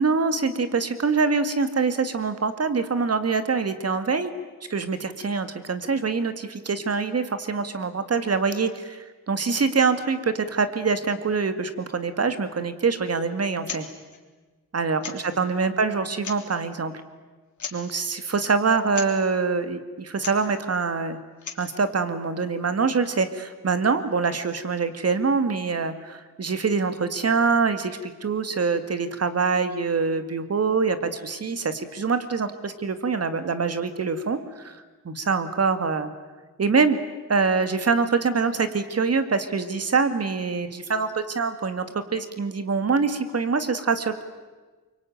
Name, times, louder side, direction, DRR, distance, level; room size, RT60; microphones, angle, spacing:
voice 1, 0.0-4.3 4.7-13.8 14.7-16.9 17.7-21.2 21.6-34.8 35.0-36.1 36.6-37.0 37.3-41.9 42.1-44.2, right 4 dB, 45° right, 10 dB, 2.1 m, -24 dB
sound 1, 13.6-13.9 14.1-14.2 15.0-15.4 16.1-16.6 17.6-17.9 18.9-19.2 20.1-20.5 21.3-21.7, left 6 dB, 55° left, 3.3 m, -36 dB
24.5 x 23.5 x 9.2 m, 1.3 s
wide cardioid pair, 105°, 34 cm